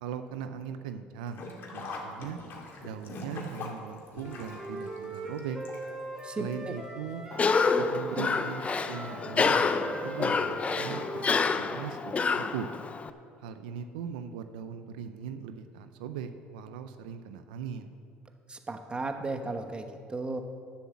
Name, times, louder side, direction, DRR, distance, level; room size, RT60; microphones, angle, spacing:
voice 1, 0.0-2.4 2.8-5.6 6.4-7.3 7.8-12.7 13.4-17.9, right 8 dB, 90° right, 9 dB, 0.6 m, -39 dB
Sink (filling or washing), 1.3-6.2 6.5-6.6 7.6-7.7 8.0-8.1, left 3 dB, 55° left, 2.3 m, -42 dB
Wind instrument woodwind instrument, 4.2-7.6 8.1-11.8, right 1 dB, 5° right, 2.8 m, -41 dB
voice 2, 6.2-6.7 18.5-20.4, right 3 dB, 25° right, 6 dB, 1.2 m, -35 dB
Cough, 7.3-13.1, left 4 dB, 30° left, 0.7 m, -28 dB
11.5 x 7.2 x 7.2 m, 2.3 s
supercardioid pair, 80°, 4 cm